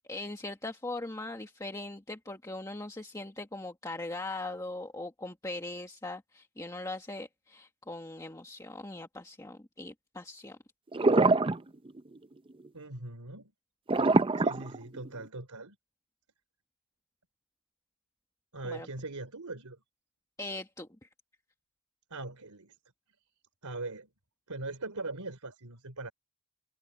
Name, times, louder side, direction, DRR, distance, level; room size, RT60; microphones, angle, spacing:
voice 1, 0.1-10.6 18.6-18.9 20.4-21.1, left 2 dB, 15° left, 1.6 m, -40 dB
sound 1, 10.9-11.6 11.9-12.2 13.9-15.3, right 3 dB, 25° right, 0.5 m, -24 dB
voice 2, 12.7-13.5 14.4-15.8 18.5-19.8 22.1-22.8 23.6-24.1 24.5-26.1, right 2 dB, 90° right, 3.3 m, -40 dB
head